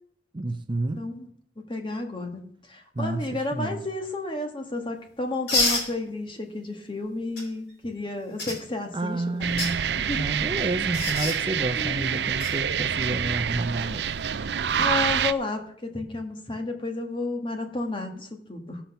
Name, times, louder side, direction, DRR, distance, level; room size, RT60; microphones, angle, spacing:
voice 1, 0.3-1.1 3.0-3.8 8.9-14.0, right 2 dB, 30° right, 8 dB, 0.6 m, -30 dB
voice 2, 1.0-1.3 1.7-9.4 10.1-10.3 11.8-12.2 14.8-18.8, left 2 dB, 30° left, 4 dB, 1.6 m, -32 dB
sound 1, 5.5-5.9 7.4-7.5 8.4-8.6 9.4-9.7 10.9-11.4 12.4-12.5 14.6-14.8, left 2 dB, 70° left, 4.5 m, -26 dB
sound 2, 9.4-15.3, right 8 dB, 70° right, 0.5 m, -27 dB
14.5 x 5.9 x 6.8 m, 0.64 s
head